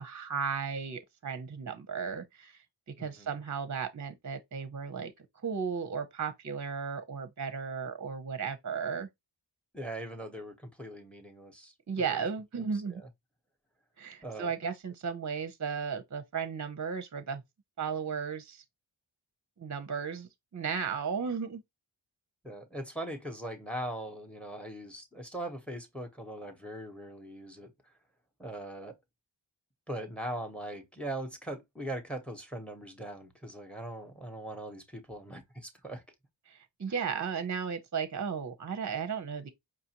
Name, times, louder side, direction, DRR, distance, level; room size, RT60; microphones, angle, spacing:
voice 1, 0.0-2.6 3.0-5.1 5.4-9.1 11.9-13.0 14.0-17.4 17.8-18.6 19.6-21.6 36.5-39.5, right 6 dB, 35° right, 0.6 m, -35 dB
voice 2, 3.0-3.3 9.7-12.2 12.6-12.7 12.9-13.1 14.2-14.5 22.4-27.7 28.4-29.0 29.9-36.0, right 1 dB, ahead, 0.9 m, -40 dB
4.9 x 2.5 x 2.9 m
wide cardioid pair, 50°, 48 cm